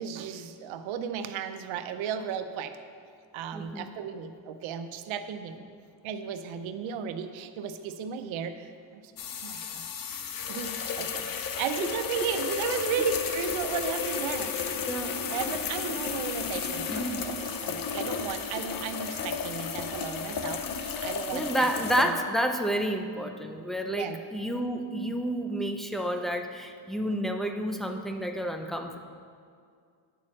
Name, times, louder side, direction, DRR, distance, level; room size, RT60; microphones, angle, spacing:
voice 1, 0.0-2.8 3.3-5.7 6.0-8.7 9.4-9.9 10.5-11.3 11.6-14.6 15.3-21.7 22.0-22.2 23.8-24.2, right 8 dB, 70° right, 8 dB, 0.7 m, -35 dB
voice 2, 3.5-3.9 11.8-11.9 13.0-13.1 14.9-15.2 16.9-17.2 21.3-29.0, right 1 dB, ahead, 5 dB, 0.5 m, -30 dB
sound 1, 9.2-22.1, left 6 dB, 45° left, 0.7 m, -33 dB
9.2 x 4.3 x 6.4 m, 2.2 s
cardioid pair, 95°, 48 cm